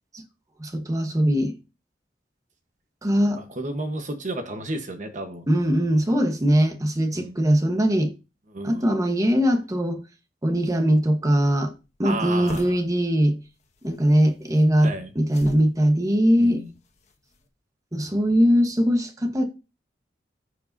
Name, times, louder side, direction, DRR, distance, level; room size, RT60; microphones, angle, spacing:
voice 1, 0.6-1.5 3.0-3.4 5.5-8.1 8.6-10.0 10.4-11.7 12.0-13.4 13.8-16.6 17.9-19.4, equal, 20° right, 1.1 m, -21 dB
voice 2, 3.4-5.4 7.1-7.4 8.5-8.9 12.0-12.8 14.8-15.1 16.4-16.7, right 2 dB, 45° right, 1.1 m, -32 dB
sound 1, 11.1-17.5, left 1 dB, 40° left, 1.4 m, -45 dB
14.5 x 4.9 x 2.6 m
head